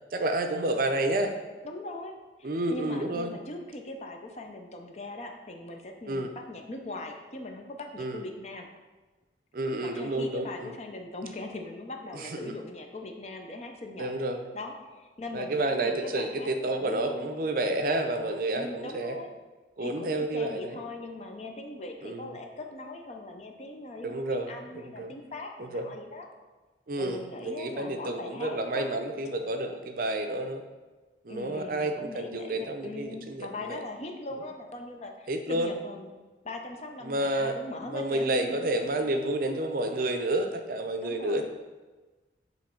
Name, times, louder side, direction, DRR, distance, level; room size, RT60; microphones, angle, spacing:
voice 1, 0.1-1.3 2.4-3.4 6.1-6.3 8.0-8.2 9.5-10.7 12.1-12.5 14.0-14.4 15.3-19.2 19.8-20.8 22.0-22.3 24.0-25.1 25.6-25.9 26.9-30.6 31.2-33.8 35.3-35.7 37.0-37.6 37.9-41.4, right 1 dB, 50° right, 6 dB, 0.5 m, -30 dB
voice 2, 1.6-2.1 2.4-8.7 9.6-14.1 14.5-17.3 18.5-19.3 19.8-26.3 27.0-29.0 31.3-36.1 36.4-38.6 41.0-41.4, left 2 dB, 35° left, 3 dB, 0.6 m, -40 dB
7.5 x 3.1 x 4.4 m, 1.2 s
head